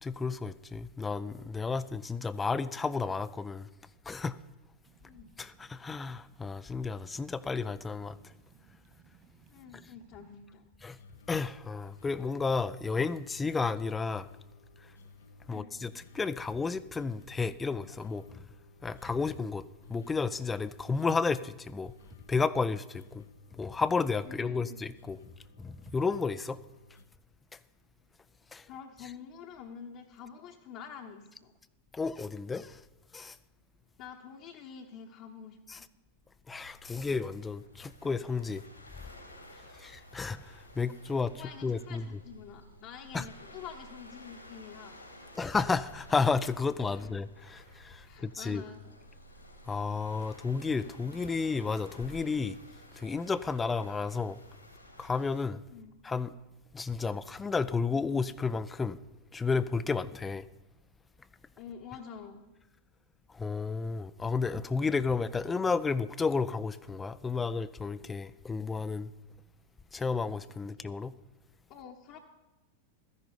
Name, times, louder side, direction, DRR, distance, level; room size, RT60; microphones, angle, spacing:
voice 1, 0.0-3.7 4.1-4.4 5.4-8.3 9.7-9.8 10.8-11.0 11.3-14.3 15.5-18.4 18.8-19.6 19.9-21.9 22.3-23.2 23.5-25.2 25.6-26.6 27.5-27.6 28.5-28.7 31.9-32.8 33.1-33.4 35.7-35.8 36.5-38.6 39.7-41.3 41.6-42.1 43.1-43.3 45.4-48.6 49.7-52.6 53.0-54.4 55.0-55.6 56.0-56.3 56.7-59.0 59.3-60.5 63.3-69.1 69.9-71.1, left 4 dB, 15° left, 0.4 m, -32 dB
sound 1, 4.8-10.4, right 6 dB, 40° right, 2.1 m, -62 dB
voice 2, 9.5-10.7 15.4-15.7 24.2-24.8 28.7-31.5 34.0-35.6 41.2-45.0 46.9-47.1 48.0-49.0 55.7-55.9 61.6-62.5 71.7-72.2, left 7 dB, 45° left, 1.0 m, -47 dB
sound 2, 11.0-27.1, left 3 dB, 65° left, 0.7 m, -56 dB
Waves surf, 36.5-55.4, equal, 85° left, 2.5 m, -53 dB
13.5 x 10.5 x 5.2 m
figure-of-eight pair, 90°, 0 cm